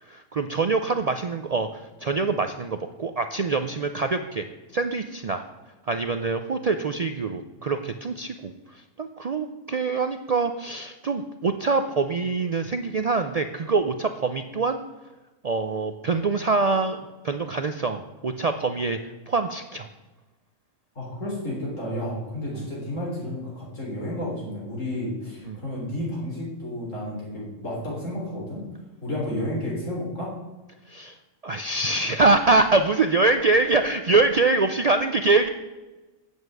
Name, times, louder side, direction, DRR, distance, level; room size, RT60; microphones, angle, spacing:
voice 1, 0.0-4.5 4.7-5.4 5.9-14.8 15.4-19.0 19.3-19.9 22.5-22.6 25.5-25.6 30.9-31.2 31.4-35.5, right 3 dB, 75° right, 7 dB, 0.3 m, -24 dB
voice 2, 21.0-28.7 29.0-30.3, left 1 dB, 70° left, -4 dB, 4.0 m, -31 dB
8.1 x 7.2 x 7.8 m, 1.1 s
omnidirectional pair, 1.4 m